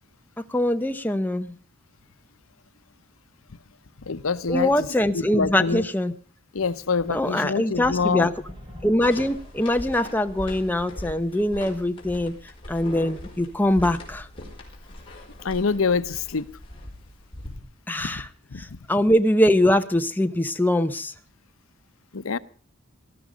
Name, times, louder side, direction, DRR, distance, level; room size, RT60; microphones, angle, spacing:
voice 1, 0.5-1.5 4.5-6.1 7.1-8.3 8.8-14.3 17.9-18.3 18.6-21.1, left 1 dB, 10° left, 0.8 m, -23 dB
voice 2, 4.0-4.7 5.1-5.9 6.5-8.3 15.4-16.5 18.1-18.2 18.5-18.6 22.1-22.4, left 5 dB, 85° left, 0.8 m, -25 dB
sound 1, 6.6-11.1, equal, 25° right, 5.9 m, -47 dB
sound 2, 9.0-17.6, left 1 dB, 25° left, 4.8 m, -40 dB
19.0 x 13.5 x 5.1 m
head